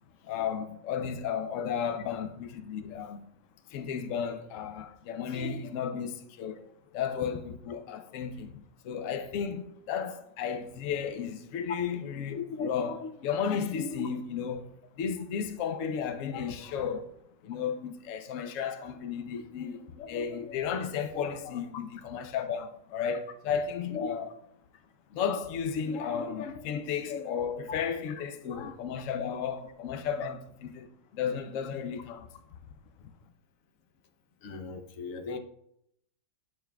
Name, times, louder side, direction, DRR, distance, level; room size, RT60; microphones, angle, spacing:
voice 1, 0.2-3.3 3.7-6.6 6.9-17.1 17.4-24.4 25.1-32.3, left 7 dB, 90° left, 0.6 m, -33 dB
voice 2, 34.4-35.4, left 4 dB, 60° left, 0.9 m, -39 dB
9.2 x 6.3 x 2.3 m
omnidirectional pair, 2.0 m